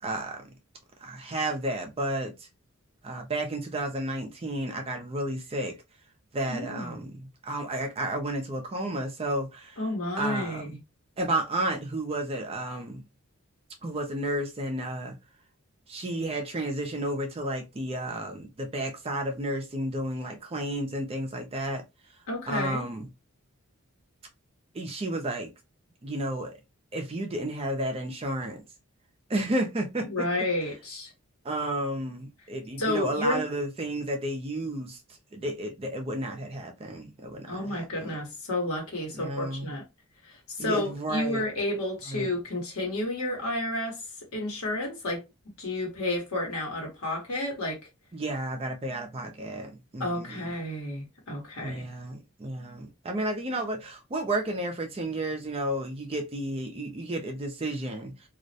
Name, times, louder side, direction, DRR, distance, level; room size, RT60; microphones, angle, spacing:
voice 1, 0.0-0.5 1.0-2.5 3.0-5.8 6.3-9.8 10.2-10.8 11.2-13.1 13.8-15.2 15.9-21.8 22.5-23.1 24.7-25.5 26.0-26.6 26.9-28.6 29.3-30.3 31.4-35.0 35.3-38.1 39.1-39.7 40.6-41.4 42.1-42.3 48.1-50.5 51.6-58.3, right 1 dB, 25° right, 0.4 m, -32 dB
voice 2, 6.5-6.9 9.8-10.8 22.3-22.8 30.0-31.1 32.8-33.4 37.5-39.8 40.2-44.0 44.3-45.2 45.6-47.8 50.0-51.9, left 1 dB, 80° left, 1.1 m, -31 dB
2.4 x 2.0 x 2.6 m
head